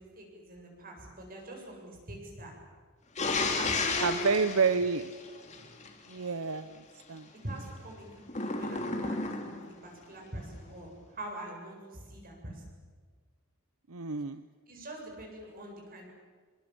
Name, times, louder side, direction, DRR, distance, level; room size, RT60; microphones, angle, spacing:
voice 1, 0.0-2.6 3.5-4.3 4.7-4.8 7.4-9.5 9.8-12.6 14.7-16.1, right 1 dB, 40° right, 1 dB, 7.9 m, -44 dB
sound 1, 3.2-5.9 8.3-9.7, left 3 dB, 30° left, 3.2 m, -32 dB
voice 2, 4.0-5.1 6.1-6.8 7.1-7.3 13.9-14.4, right 5 dB, 75° right, 12 dB, 0.8 m, -29 dB
28.0 x 25.5 x 7.8 m, 1.5 s
head